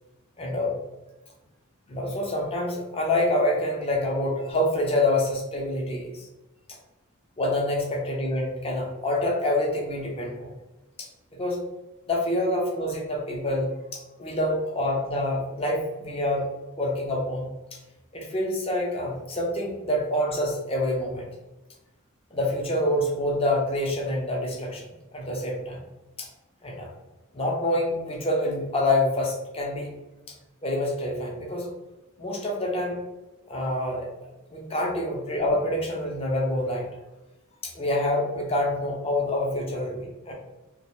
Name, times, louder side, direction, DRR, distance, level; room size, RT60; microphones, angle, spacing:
voice 1, 0.4-0.8 1.9-6.3 7.4-10.5 11.0-11.6 12.1-16.4 16.8-17.8 18.1-21.3 22.3-25.8 26.2-26.3 26.6-26.9 27.3-29.9 30.3-30.4 30.6-31.7 32.2-33.0 33.5-36.9 37.6-40.3, left 1 dB, 25° left, -1 dB, 0.6 m, -27 dB
2.4 x 2.1 x 2.9 m, 1.0 s
head